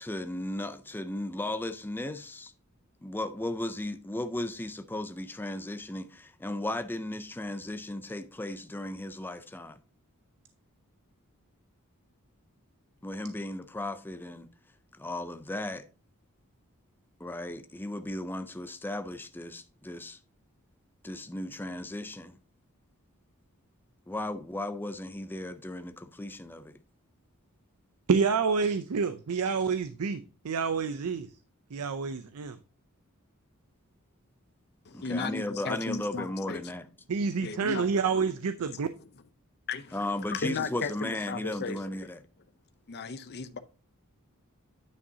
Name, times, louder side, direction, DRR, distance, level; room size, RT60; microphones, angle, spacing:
voice 1, 0.0-2.5 3.0-9.8 13.0-14.5 15.0-15.9 17.2-20.2 21.0-22.4 24.1-26.8 34.9-36.9 39.9-42.2, left 1 dB, 10° left, 0.4 m, -36 dB
voice 2, 28.1-31.3 31.7-32.6 37.1-38.9, right 5 dB, 85° right, 0.5 m, -28 dB
voice 3, 34.9-36.6 37.4-38.0 39.7-40.0 40.3-42.1 42.9-43.6, left 4 dB, 50° left, 0.6 m, -35 dB
9.5 x 5.5 x 2.7 m
head